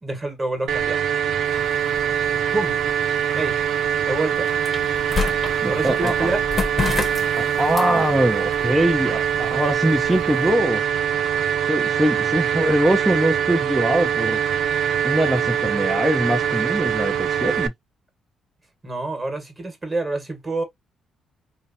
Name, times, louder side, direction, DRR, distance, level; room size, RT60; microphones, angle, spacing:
voice 1, 0.0-1.0 2.5-2.8 3.3-3.5 4.1-4.5 5.7-6.4 18.8-20.6, right 2 dB, 25° right, 1.5 m, -27 dB
sound 1, 0.7-17.7, right 8 dB, 75° right, 0.4 m, -23 dB
sound 2, 1.4-10.5, left 4 dB, 30° left, 1.1 m, -32 dB
voice 2, 5.6-6.3 7.4-10.8 11.7-14.4 15.0-17.7, right 1 dB, 5° right, 0.8 m, -22 dB
3.2 x 2.8 x 2.7 m
cardioid pair, 90°, 0 cm